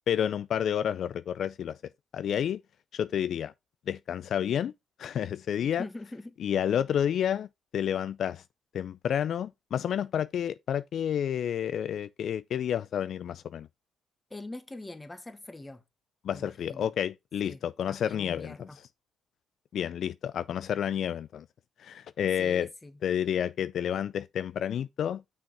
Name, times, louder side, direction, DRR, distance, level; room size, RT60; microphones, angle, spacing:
voice 1, 0.1-1.8 2.1-2.6 2.9-3.5 3.9-4.7 5.0-5.9 6.4-7.5 7.7-8.4 8.7-13.7 16.2-18.6 19.7-21.5 21.8-22.7 23.0-25.2, left 9 dB, 65° left, 0.3 m, -30 dB
voice 2, 5.8-6.4 14.3-15.8 16.3-16.9 17.4-17.6 17.9-18.8 22.4-23.0, left 2 dB, 15° left, 1.4 m, -43 dB
6.3 x 5.6 x 4.6 m
cardioid pair, 90°, 0 cm